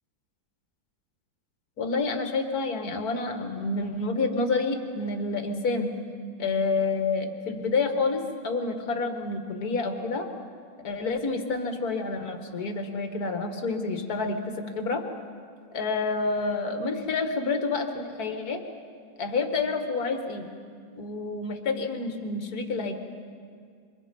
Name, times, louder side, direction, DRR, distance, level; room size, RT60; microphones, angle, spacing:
voice 1, 1.8-5.9 6.4-10.3 10.8-15.0 15.7-18.6 19.2-20.4 21.0-22.9, left 3 dB, 50° left, 5 dB, 2.2 m, -28 dB
27.5 x 25.0 x 5.4 m, 2.1 s
omnidirectional pair, 2.1 m